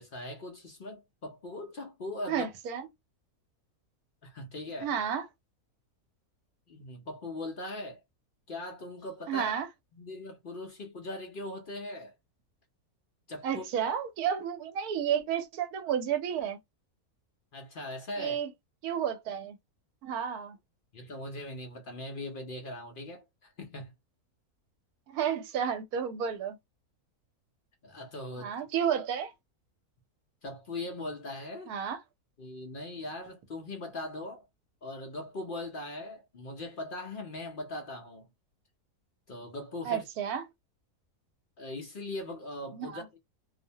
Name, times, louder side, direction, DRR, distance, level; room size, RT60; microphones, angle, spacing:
voice 1, 0.0-2.5 4.2-4.9 6.7-8.0 8.5-9.5 10.0-12.1 13.3-13.6 17.5-18.4 20.9-23.9 27.8-28.5 30.4-31.7 32.4-34.5 34.8-38.3 39.3-40.0 41.6-43.2, left 2 dB, 65° left, 0.5 m, -40 dB
voice 2, 2.3-2.9 4.8-5.3 9.3-9.7 13.4-16.6 18.2-18.5 18.8-19.6 20.0-20.6 25.1-26.6 28.4-29.3 31.7-32.0 39.8-40.4 42.7-43.0, right 8 dB, 75° right, 1.1 m, -31 dB
2.6 x 2.1 x 2.7 m
omnidirectional pair, 1.6 m